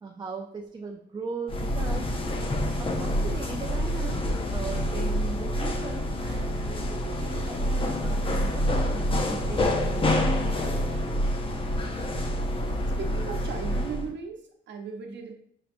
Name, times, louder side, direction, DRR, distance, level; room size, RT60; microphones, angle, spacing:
voice 1, 0.0-2.1 2.8-4.2 4.5-10.5 10.9-11.1, right 4 dB, 20° right, 1 dB, 0.4 m, -39 dB
sound 1, 1.5-14.1, left 1 dB, 25° left, 0.6 m, -27 dB
voice 2, 13.0-15.3, right 5 dB, 65° right, 3 dB, 0.8 m, -37 dB
5.6 x 2.5 x 2.6 m, 0.63 s
cardioid pair, 90°, 20 cm